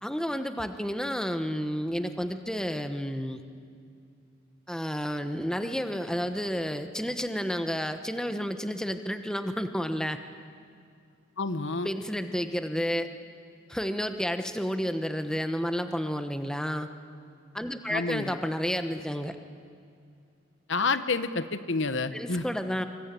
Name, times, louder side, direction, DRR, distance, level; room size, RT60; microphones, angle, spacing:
voice 1, 0.0-3.4 4.7-10.2 11.8-13.1 13.7-16.9 17.5-19.4 22.1-22.8, equal, 5° left, 8 dB, 1.1 m, -31 dB
voice 2, 11.4-11.9 17.9-18.4 20.7-22.4, left 3 dB, 65° left, 11 dB, 1.2 m, -29 dB
25.5 x 24.0 x 9.1 m, 2.4 s
head